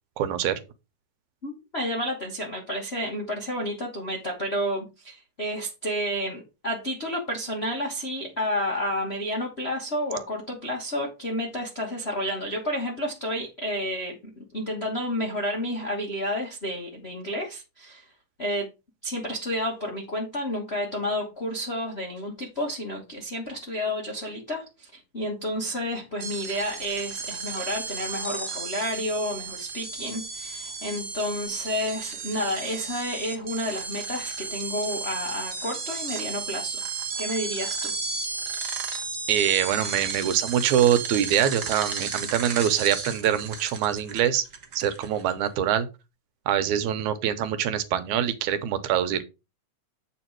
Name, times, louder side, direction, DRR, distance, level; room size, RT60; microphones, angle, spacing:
voice 1, 0.2-0.6 39.3-44.4 44.7-45.9 46.5-49.2, right 10 dB, 85° right, 2.3 m, -24 dB
voice 2, 1.4-18.1 18.4-18.7 19.0-36.9 37.2-37.9, equal, 50° left, 0.7 m, -30 dB
sound 1, 26.2-45.3, right 5 dB, 60° right, 0.8 m, -34 dB
8.1 x 4.5 x 4.5 m
omnidirectional pair, 3.3 m